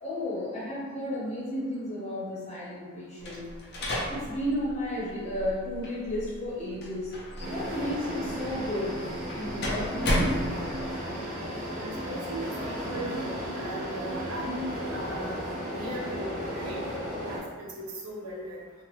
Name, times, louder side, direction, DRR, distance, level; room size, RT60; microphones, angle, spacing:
voice 1, 0.0-3.5 4.1-7.1 7.5-9.0 9.3-10.4, left 1 dB, 30° left, -8 dB, 0.9 m, -33 dB
sound 1, 3.2-11.0, equal, 50° left, 0.5 m, -34 dB
sound 2, 7.4-17.4, equal, 40° right, 0.6 m, -34 dB
voice 2, 11.8-17.0 17.3-18.6, right 1 dB, 85° right, -3 dB, 0.6 m, -38 dB
3.0 x 2.2 x 3.0 m, 1.5 s
head